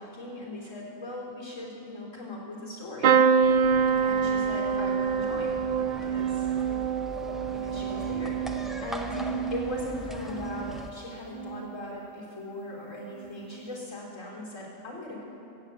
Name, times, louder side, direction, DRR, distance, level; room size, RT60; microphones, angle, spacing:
voice 1, 0.0-3.2 4.0-6.5 7.5-15.2, left 1 dB, 75° left, -5 dB, 4.0 m, -39 dB
sound 1, 3.0-10.9 11.3-11.9 13.1-13.3 13.5-13.6, right 6 dB, 60° right, 0.5 m, -26 dB
sound 2, 3.4-10.9, left 1 dB, ahead, 0.5 m, -41 dB
15.5 x 8.2 x 8.5 m, 3.0 s
omnidirectional pair, 1.4 m